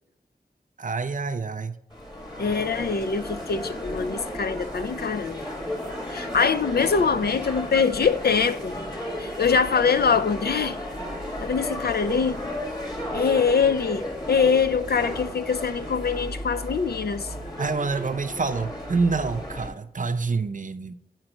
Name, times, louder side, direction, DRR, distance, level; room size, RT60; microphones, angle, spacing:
voice 1, 0.8-1.7 17.6-20.9, right 4 dB, 50° right, 0.5 m, -27 dB
sound 1, 1.9-19.7, left 1 dB, 25° left, 1.9 m, -34 dB
voice 2, 2.4-5.4 6.1-8.7 9.2-10.8 11.4-12.4 13.1-17.3, left 6 dB, 65° left, 0.4 m, -23 dB
8.8 x 4.4 x 3.0 m
wide cardioid pair, 50°, 17 cm